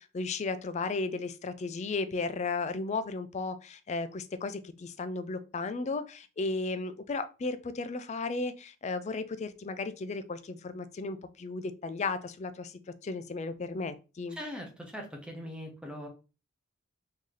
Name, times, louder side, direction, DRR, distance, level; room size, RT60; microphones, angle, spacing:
voice 1, 0.0-14.4, left 3 dB, 35° left, 11 dB, 0.3 m, -35 dB
voice 2, 14.3-16.1, equal, 5° right, 1 dB, 0.8 m, -41 dB
3.1 x 2.7 x 3.7 m, 0.32 s
head